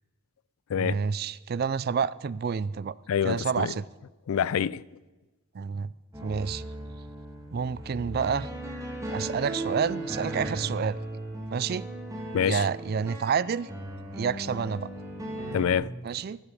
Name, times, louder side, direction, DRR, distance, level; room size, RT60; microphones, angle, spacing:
voice 1, 0.7-3.0 3.2-3.8 5.5-5.9 6.2-6.6 7.5-8.5 9.1-11.0 11.5-11.8 12.4-13.7 14.1-14.9 16.0-16.4, right 6 dB, 45° right, 0.3 m, -29 dB
voice 2, 3.1-3.7 4.3-4.8 12.3-12.6 15.5-16.0, left 8 dB, 70° left, 0.3 m, -26 dB
sound 1, 6.1-15.7, right 1 dB, 15° right, 2.3 m, -37 dB
12.0 x 10.0 x 8.3 m
head